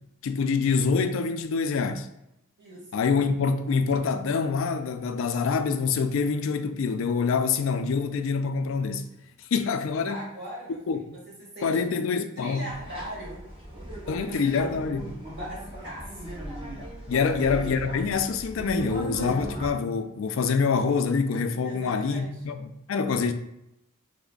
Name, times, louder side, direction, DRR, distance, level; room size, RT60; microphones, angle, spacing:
voice 1, 0.2-2.1 2.9-9.1 9.5-10.2 10.9-11.0 11.6-12.7 14.1-15.0 17.1-23.3, left 5 dB, 70° left, 0.3 m, -26 dB
voice 2, 2.6-3.0 10.1-12.0 12.4-13.4 14.0-14.9 15.3-16.3 17.1-17.4 21.6-22.3, right 1 dB, 50° right, 1.5 m, -40 dB
sound 1, 12.7-19.7, right 1 dB, 25° right, 0.9 m, -37 dB
3.3 x 2.1 x 3.7 m
head